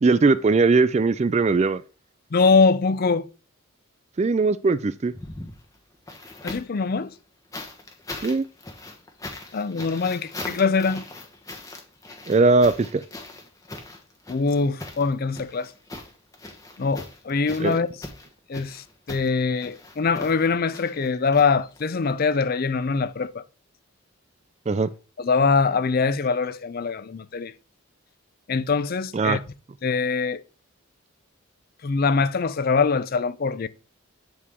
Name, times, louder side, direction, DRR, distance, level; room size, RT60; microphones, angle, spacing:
voice 1, 0.0-1.8 4.2-5.1 8.2-8.4 12.3-13.0 17.6-17.8 24.7-24.9 29.1-29.4, right 3 dB, 30° right, 0.3 m, -20 dB
voice 2, 2.3-3.3 6.4-7.1 9.5-11.0 14.3-15.7 16.8-17.9 18.5-23.4 25.2-27.5 28.5-29.4 29.8-30.4 31.8-33.7, left 4 dB, 45° left, 0.4 m, -23 dB
sound 1, 5.1-6.8 7.5-22.0 23.2-23.3, left 2 dB, 15° left, 1.2 m, -40 dB
8.3 x 4.7 x 3.7 m
head